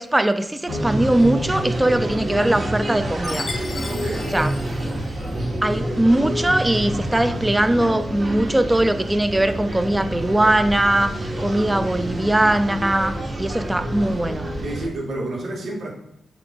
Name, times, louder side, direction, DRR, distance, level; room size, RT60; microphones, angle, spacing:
voice 1, 0.0-3.5 4.3-4.5 5.6-14.5, right 1 dB, 15° right, 10 dB, 0.6 m, -20 dB
sound 1, 0.7-14.9, right 1 dB, 45° right, 2.7 m, -27 dB
Chime, 3.2-5.6, left 4 dB, 55° left, 0.6 m, -36 dB
voice 2, 3.9-4.3 11.1-11.4 14.6-15.9, right 2 dB, 80° right, -3 dB, 2.6 m, -30 dB
8.7 x 3.5 x 3.9 m, 0.81 s
cardioid pair, 60°, 0 cm